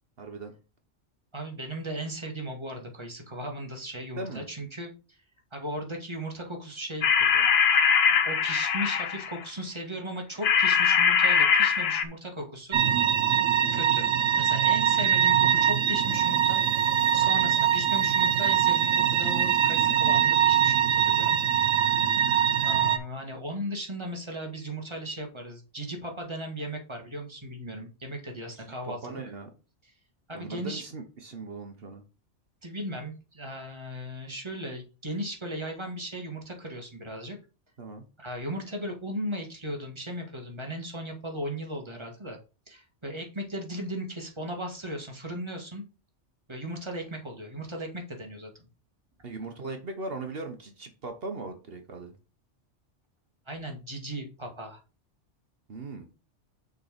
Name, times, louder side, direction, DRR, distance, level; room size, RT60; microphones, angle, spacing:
voice 1, 0.2-0.5 4.2-4.5 21.9-22.1 28.6-29.5 30.3-32.0 37.8-38.0 49.2-52.1 55.7-56.1, right 3 dB, 55° right, 5 dB, 1.2 m, -39 dB
voice 2, 1.3-5.2 5.5-7.5 7.7-7.9 8.2-12.8 13.7-14.1 14.4-16.6 17.1-21.4 21.6-21.8 22.6-29.2 30.3-30.8 32.6-37.4 38.2-42.4 42.7-45.8 46.5-48.7 53.5-54.8, equal, 25° right, 2 dB, 1.7 m, -37 dB
sound 1, 7.0-9.4 10.4-12.0, left 6 dB, 60° left, 0.9 m, -22 dB
sound 2, 12.7-23.0, right 9 dB, 75° right, 1.0 m, -23 dB
6.6 x 4.0 x 5.1 m, 0.32 s
omnidirectional pair, 1.2 m